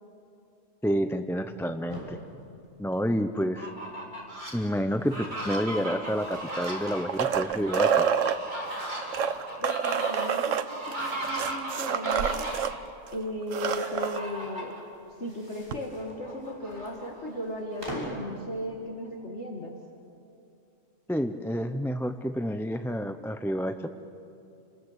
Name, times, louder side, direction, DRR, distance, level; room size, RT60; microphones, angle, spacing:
voice 1, 0.8-2.2 2.8-3.7 4.5-8.1 21.1-23.9, equal, 5° left, 8 dB, 0.5 m, -29 dB
sound 1, 1.9-3.5 4.3-7.8 8.2-9.6 10.6-11.6 12.1-12.2 12.4-12.5 13.4-14.3 15.1-18.3, equal, 20° right, 6.1 m, -45 dB
Fowl, 3.4-4.5 5.0-12.8 13.7-14.8 15.2-15.3 15.7-17.4, right 1 dB, 35° right, 4.3 m, -37 dB
sound 2, 6.5-8.4 9.0-12.7 13.1-13.2 13.4-14.2 15.7-15.8, right 8 dB, 90° right, 1.3 m, -28 dB
voice 2, 9.6-12.5 13.1-14.8 15.2-19.7, left 1 dB, 65° left, 0 dB, 2.4 m, -36 dB
30.0 x 20.0 x 8.1 m, 2.7 s
omnidirectional pair, 1.3 m